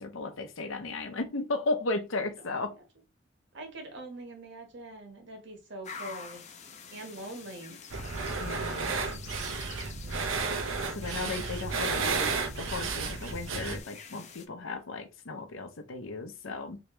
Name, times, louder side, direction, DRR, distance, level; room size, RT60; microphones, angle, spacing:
voice 1, 0.0-2.8 8.4-8.9 10.9-16.8, left 3 dB, 85° left, 0.7 m, -35 dB
voice 2, 3.5-6.5 6.9-7.8 10.0-10.5, right 1 dB, 65° right, 1.1 m, -43 dB
sound 1, 5.8-14.5, left 6 dB, 35° left, 0.5 m, -47 dB
sound 2, 7.9-13.8, right 4 dB, 85° right, 0.6 m, -32 dB
3.3 x 2.9 x 3.0 m
head